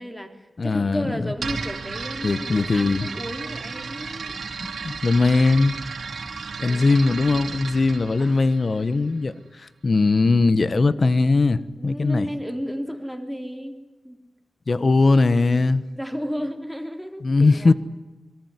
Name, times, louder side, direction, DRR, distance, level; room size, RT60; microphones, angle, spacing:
voice 1, 0.0-4.4 6.6-7.0 8.2-8.4 11.8-13.8 14.0-14.2 15.9-17.7, equal, ahead, 3.4 m, -33 dB
voice 2, 0.6-1.3 2.2-3.1 4.6-5.7 6.6-9.3 9.8-12.3 14.7-15.8 17.2-17.7, left 3 dB, 40° left, 1.3 m, -20 dB
sound 1, 1.4-9.2, right 5 dB, 90° right, 3.9 m, -34 dB
25.5 x 23.0 x 9.7 m
wide cardioid pair, 160°, 0 cm